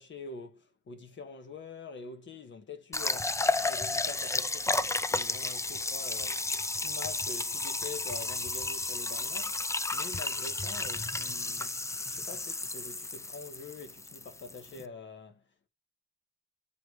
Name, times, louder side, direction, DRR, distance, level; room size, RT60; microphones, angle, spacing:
voice 1, 0.0-15.7, left 3 dB, 75° left, 1.5 m, -45 dB
sound 1, 2.9-14.8, left 3 dB, 15° left, 0.5 m, -32 dB
8.8 x 3.5 x 4.8 m
wide cardioid pair, 105°, 19 cm